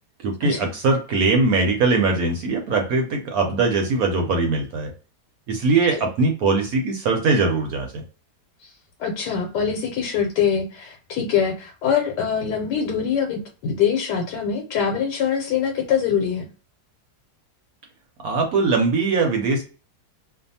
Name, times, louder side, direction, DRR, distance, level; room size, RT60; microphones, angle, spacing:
voice 1, 0.2-4.9 5.5-8.0 18.2-19.6, right 3 dB, 70° right, 3 dB, 1.0 m, -21 dB
voice 2, 9.0-16.4, left 7 dB, 85° left, 1 dB, 1.2 m, -23 dB
2.6 x 2.3 x 2.6 m, 0.34 s
omnidirectional pair, 1.8 m